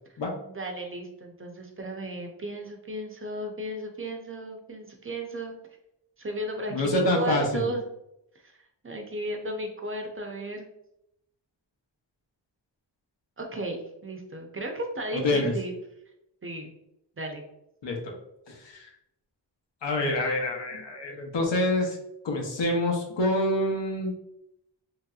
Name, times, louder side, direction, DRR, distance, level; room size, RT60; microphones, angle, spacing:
voice 1, 0.5-5.6 6.2-7.8 8.4-8.5 8.8-10.7 13.4-15.8 16.4-16.8 17.2-17.4, right 1 dB, 30° right, 2 dB, 0.4 m, -34 dB
voice 2, 6.7-7.7 15.1-15.5 17.8-18.1 18.5-18.9 19.8-22.0 22.2-24.1, left 1 dB, 80° left, 0 dB, 0.8 m, -26 dB
3.0 x 2.8 x 2.3 m, 0.82 s
wide cardioid pair, 110°, 43 cm